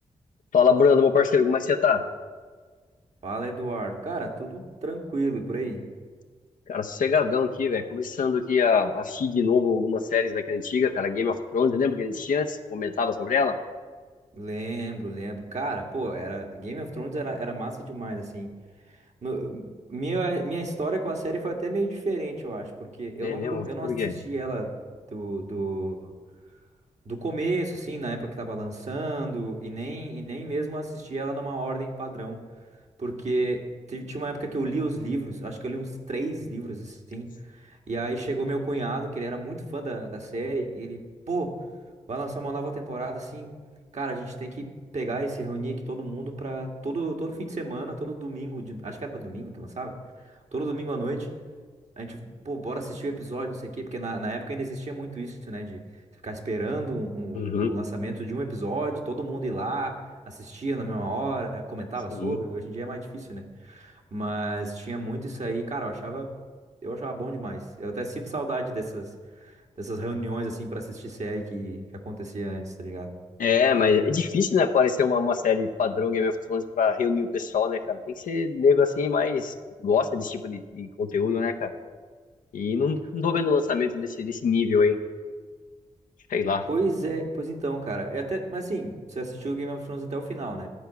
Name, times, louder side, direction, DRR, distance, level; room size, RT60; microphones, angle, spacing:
voice 1, 0.5-2.0 6.7-13.6 23.2-24.1 57.3-57.7 62.1-62.4 73.4-79.5 79.8-81.7 82.5-85.0 86.3-86.7, left 5 dB, 80° left, 6 dB, 0.7 m, -24 dB
voice 2, 3.2-5.8 14.3-18.5 19.2-24.7 25.1-26.1 27.1-32.4 33.0-41.6 42.1-43.5 43.9-50.0 50.5-51.3 52.0-55.8 56.2-66.3 66.8-69.1 69.4-73.1 86.7-90.7, right 2 dB, 55° right, 1 dB, 1.7 m, -32 dB
12.0 x 4.6 x 8.1 m, 1.5 s
supercardioid pair, 40°, 14 cm